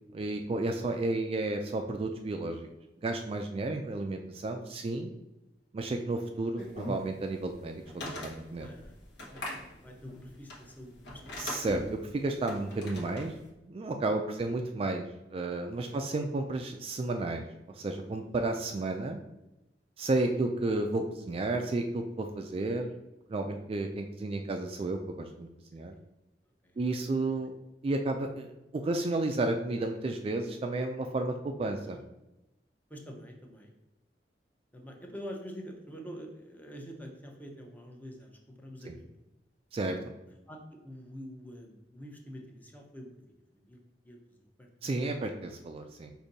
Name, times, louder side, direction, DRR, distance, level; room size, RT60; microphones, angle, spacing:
voice 1, 0.1-2.7 3.0-5.1 5.7-8.7 11.4-13.3 13.6-17.4 17.7-19.2 20.0-22.9 23.3-25.9 26.8-27.5 27.8-32.0 38.9-39.0 39.7-40.0 44.8-46.1, right 2 dB, 35° right, 5 dB, 0.3 m, -32 dB
sound 1, 6.6-13.5, left 1 dB, 80° left, 1.1 m, -42 dB
voice 2, 8.6-9.0 9.3-11.7 15.7-16.0 18.7-18.9 25.8-26.0 26.6-27.2 31.6-32.0 32.9-33.7 34.7-39.2 40.5-43.8 44.0-45.0, equal, 10° left, 1 dB, 0.6 m, -47 dB
5.1 x 2.6 x 4.0 m, 0.95 s
head